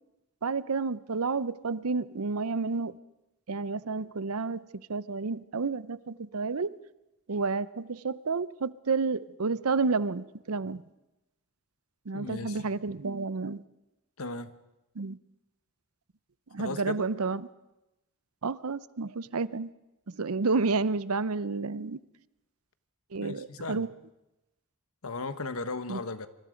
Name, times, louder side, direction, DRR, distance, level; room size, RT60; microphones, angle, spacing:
voice 1, 0.4-3.0 3.5-4.6 4.9-6.7 7.3-10.8 12.1-13.6 15.0-15.2 16.5-17.5 18.4-19.7 20.1-22.0 23.1-23.9 25.9-26.0, right 4 dB, 85° right, 17 dB, 0.7 m, -30 dB
voice 2, 12.1-12.7 14.2-14.5 16.6-17.0 23.2-23.9 25.0-26.3, left 3 dB, 75° left, 12 dB, 1.3 m, -36 dB
26.0 x 24.5 x 5.1 m, 0.96 s
head